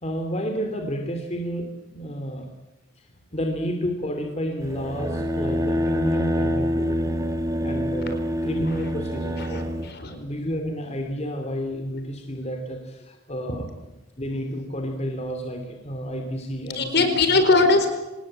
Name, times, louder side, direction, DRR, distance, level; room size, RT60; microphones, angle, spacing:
voice 1, 0.0-2.5 3.0-3.1 3.3-7.0 7.6-9.6 10.1-13.7 14.2-17.3, equal, 35° left, 5 dB, 2.7 m, -30 dB
sound 1, 4.6-9.9, equal, 15° right, 1.9 m, -26 dB
voice 2, 9.4-10.1 16.7-17.9, left 3 dB, 55° left, 8 dB, 4.4 m, -20 dB
26.0 x 19.5 x 8.8 m, 1.1 s
head